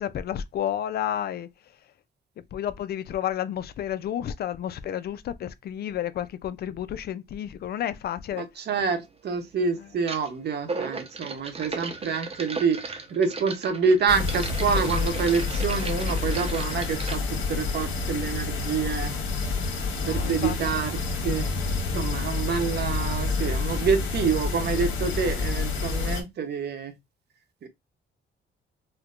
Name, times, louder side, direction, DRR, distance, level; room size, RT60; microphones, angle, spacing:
voice 1, 0.0-1.5 2.5-8.5 20.0-20.6, left 10 dB, 55° left, 0.4 m, -31 dB
voice 2, 8.3-19.1 20.0-21.5 21.9-26.9 27.6-27.7, right 5 dB, 55° right, 0.9 m, -27 dB
sound 1, 8.7-8.9 10.0-10.3 10.6-17.2, right 3 dB, 30° right, 0.8 m, -36 dB
sound 2, 14.1-26.2, left 4 dB, 80° left, 1.0 m, -28 dB
4.4 x 2.2 x 2.4 m
cardioid pair, 90°, 20 cm